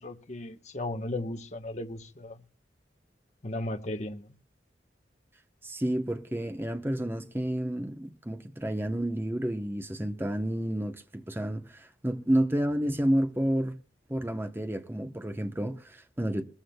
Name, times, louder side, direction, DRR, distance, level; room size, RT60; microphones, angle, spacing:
voice 1, 0.0-2.4 3.4-4.3, left 1 dB, 40° left, 1.0 m, -36 dB
voice 2, 5.6-13.8 14.1-16.4, right 1 dB, 10° right, 0.8 m, -30 dB
22.0 x 14.5 x 2.2 m
head